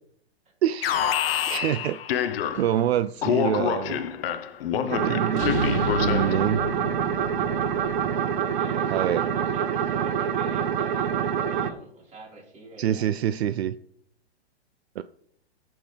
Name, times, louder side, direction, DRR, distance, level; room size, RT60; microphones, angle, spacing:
voice 1, 0.6-2.0 2.5-4.0 4.7-6.6 8.9-9.3 12.8-13.8 15.0-15.1, right 10 dB, 70° right, 13 dB, 0.5 m, -26 dB
Alarm, 0.8-2.8 3.2-6.5, left 9 dB, 60° left, 0.9 m, -27 dB
sound 1, 2.5-3.0 5.4-9.1, left 3 dB, 85° left, 1.1 m, -33 dB
sound 2, 4.9-11.7, right 8 dB, 50° right, 0.9 m, -26 dB
voice 2, 8.6-13.1, right 2 dB, 20° right, -2 dB, 4.2 m, -46 dB
16.5 x 6.3 x 3.3 m, 0.65 s
hypercardioid pair, 140°, 33 cm